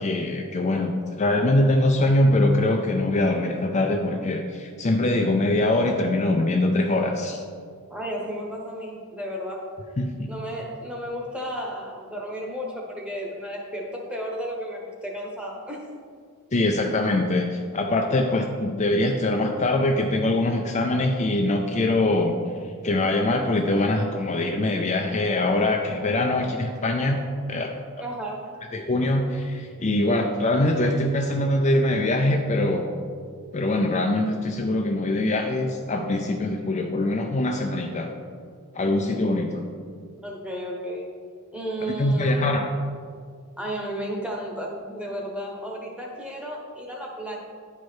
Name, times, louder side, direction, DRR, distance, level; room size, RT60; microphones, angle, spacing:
voice 1, 0.0-7.4 10.0-10.3 16.5-22.3 22.6-27.2 27.5-27.7 28.7-32.9 33.5-38.1 38.7-39.7 42.0-42.6, left 1 dB, 30° left, 2 dB, 0.4 m, -23 dB
voice 2, 7.9-9.6 10.3-15.8 28.0-28.5 40.2-41.1 41.5-42.6 43.6-47.4, equal, 5° right, -1 dB, 1.1 m, -33 dB
10.5 x 4.7 x 4.4 m, 2.1 s
head